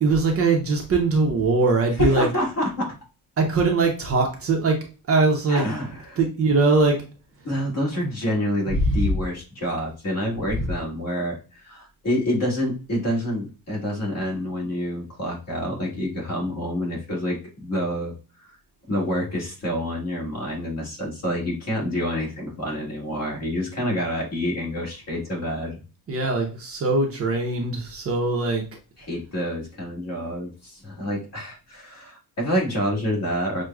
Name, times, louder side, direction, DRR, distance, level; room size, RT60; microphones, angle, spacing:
voice 1, 0.0-2.3 3.4-4.8 5.1-5.6 6.2-7.0 8.0-8.1 8.7-9.0 10.6-10.7 26.1-28.6, right 3 dB, 35° right, 1 dB, 0.7 m, -21 dB
voice 2, 2.0-2.9 5.5-6.2 7.4-18.1 18.9-25.8 29.0-33.6, equal, 40° left, -3 dB, 1.7 m, -27 dB
6.2 x 2.2 x 2.3 m, 0.33 s
cardioid pair, 150°, 40 cm